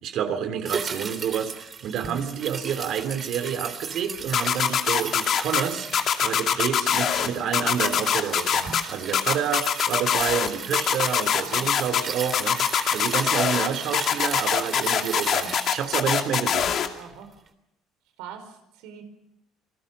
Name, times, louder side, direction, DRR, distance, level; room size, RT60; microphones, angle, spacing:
voice 1, 0.0-5.9 6.2-12.6 12.9-16.7, right 8 dB, 60° right, 10 dB, 2.8 m, -29 dB
sound 1, 0.7-17.2 17.5-17.6, right 5 dB, 35° right, 3.1 m, -37 dB
sound 2, 4.3-5.6 5.9-7.3 7.5-8.8 9.1-10.5 10.7-12.0 12.3-13.7 13.9-16.9, left 9 dB, 50° left, 2.6 m, -22 dB
voice 2, 16.9-17.3 18.2-19.0, right 8 dB, 90° right, 7 dB, 4.8 m, -42 dB
28.5 x 19.5 x 6.7 m, 0.83 s
cardioid pair, 125°, 0 cm